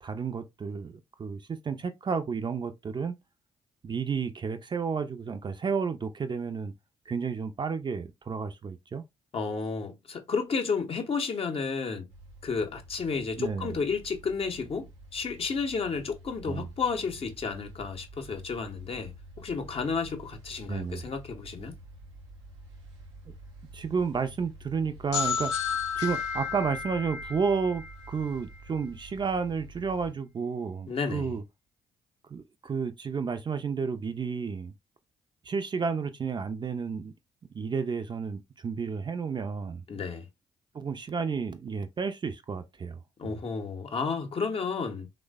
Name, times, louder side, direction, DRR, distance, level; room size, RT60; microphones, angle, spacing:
voice 1, 0.0-3.2 3.8-6.7 7.1-9.0 13.4-13.7 16.5-16.7 20.7-21.0 23.7-25.5 26.0-31.4 32.3-34.7 35.4-37.1 37.5-39.8 40.7-43.3, right 5 dB, 30° right, 0.4 m, -31 dB
voice 2, 9.3-12.1 12.4-21.8 30.9-31.3 39.9-40.3 43.2-45.1, left 5 dB, 40° left, 0.7 m, -32 dB
sound 1, 12.1-30.1, right 2 dB, 85° right, 0.5 m, -49 dB
sound 2, 25.1-28.8, left 6 dB, 85° left, 0.5 m, -32 dB
3.1 x 2.1 x 2.2 m
hypercardioid pair, 40°, 14 cm